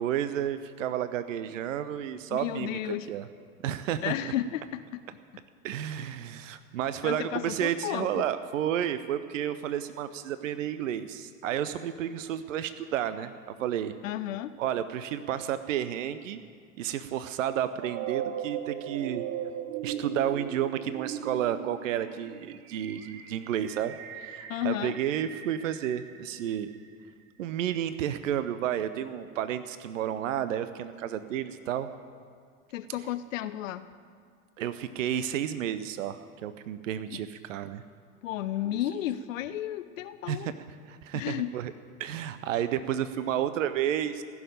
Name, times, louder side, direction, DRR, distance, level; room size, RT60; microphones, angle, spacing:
voice 1, 0.0-3.2 3.6-4.1 5.6-13.9 14.6-16.4 16.8-19.2 19.8-26.7 27.4-31.9 34.6-37.8 40.3-40.5 40.9-41.7 42.0-44.2, right 10 dB, 65° right, 12 dB, 0.7 m, -31 dB
voice 2, 2.3-3.1 4.0-5.0 5.3-5.4 7.0-8.3 14.0-14.5 24.5-25.0 32.7-33.9 37.1-37.2 38.2-40.5 41.1-41.5, left 12 dB, 65° left, 13 dB, 0.5 m, -33 dB
sound 1, 17.8-26.8, right 9 dB, 35° right, 1.0 m, -38 dB
15.5 x 7.1 x 9.1 m, 2.1 s
figure-of-eight pair, 85°, 42 cm